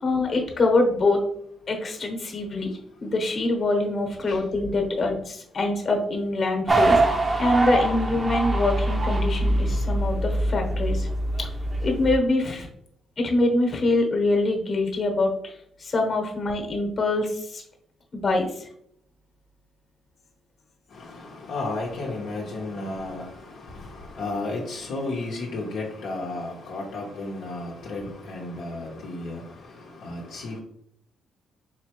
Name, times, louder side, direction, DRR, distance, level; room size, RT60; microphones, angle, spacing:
voice 1, 0.0-1.3 1.7-7.0 7.4-11.1 11.4-11.5 11.8-12.7 13.2-17.6 18.1-18.7, left 2 dB, 45° left, 3 dB, 1.2 m, -24 dB
sound 1, 6.7-12.2, right 1 dB, 25° right, 0.7 m, -23 dB
voice 2, 20.9-30.6, left 2 dB, 70° left, -2 dB, 0.9 m, -33 dB
4.2 x 3.2 x 3.0 m, 0.69 s
cardioid pair, 90°, 0 cm